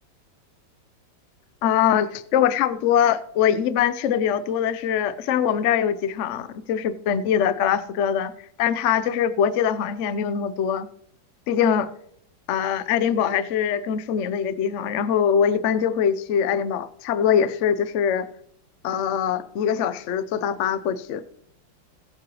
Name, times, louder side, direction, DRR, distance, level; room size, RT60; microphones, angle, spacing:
voice 1, 1.6-8.3 8.6-10.9 11.5-11.9 12.5-18.3 18.8-21.2, left 8 dB, 85° left, 0.6 m, -23 dB
20.0 x 7.6 x 3.1 m
omnidirectional pair, 2.1 m